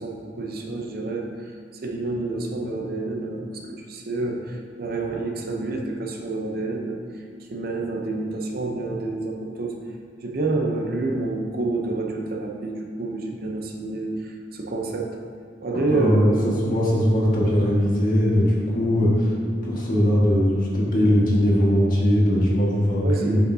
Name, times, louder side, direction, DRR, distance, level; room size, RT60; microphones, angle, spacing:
voice 1, 0.0-1.5 1.8-7.0 7.5-9.8 10.2-15.2 15.6-16.6 23.0-23.4, right 2 dB, 55° right, 2 dB, 0.7 m, -28 dB
voice 2, 15.9-19.3 19.6-23.4, equal, 45° left, -5 dB, 1.7 m, -20 dB
8.1 x 6.3 x 2.7 m, 2.2 s
head